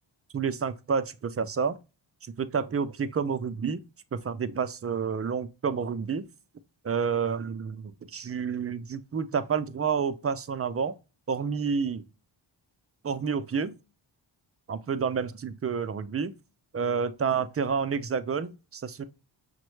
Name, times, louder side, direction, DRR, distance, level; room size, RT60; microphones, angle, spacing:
voice 1, 0.3-1.8 2.4-3.8 4.1-6.3 6.8-10.9 11.3-12.0 13.0-13.7 14.7-16.3 16.7-19.0, right 6 dB, 30° right, 0.4 m, -29 dB
5.8 x 2.1 x 3.1 m
cardioid pair, 55°, 50 cm